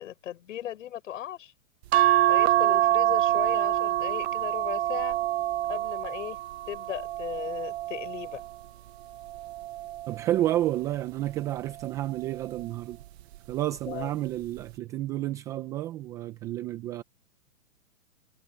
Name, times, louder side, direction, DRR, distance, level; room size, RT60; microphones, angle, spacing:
voice 1, 0.0-1.5 2.3-5.2 5.7-6.4 6.7-8.4 13.9-14.1, left 11 dB, 60° left, 6.9 m, -37 dB
sound 1, 1.9-8.5 9.2-10.6 11.8-12.2 12.6-12.7, right 14 dB, 50° right, 1.2 m, -26 dB
voice 2, 10.1-13.0 13.5-17.0, right 14 dB, 10° right, 0.4 m, -30 dB
hypercardioid pair, 125°, 42 cm